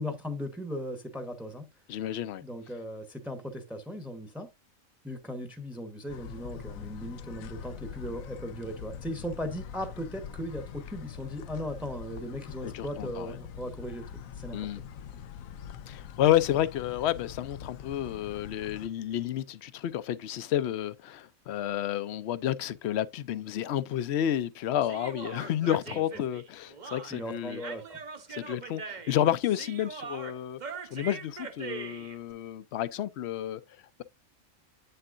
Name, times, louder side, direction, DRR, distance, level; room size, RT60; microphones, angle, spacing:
voice 1, 0.0-1.7 2.4-4.5 5.0-14.1 14.3-14.7 25.9-26.0 27.1-28.0, equal, ahead, 0.9 m, -37 dB
voice 2, 1.9-2.4 12.7-13.3 14.5-14.8 15.9-27.6 28.3-30.6 30.9-33.6, left 11 dB, 60° left, 0.8 m, -30 dB
sound 1, 6.1-18.9, left 8 dB, 80° left, 1.1 m, -43 dB
Human voice, 24.8-32.2, right 5 dB, 40° right, 0.9 m, -42 dB
8.6 x 6.7 x 2.5 m
omnidirectional pair, 1.4 m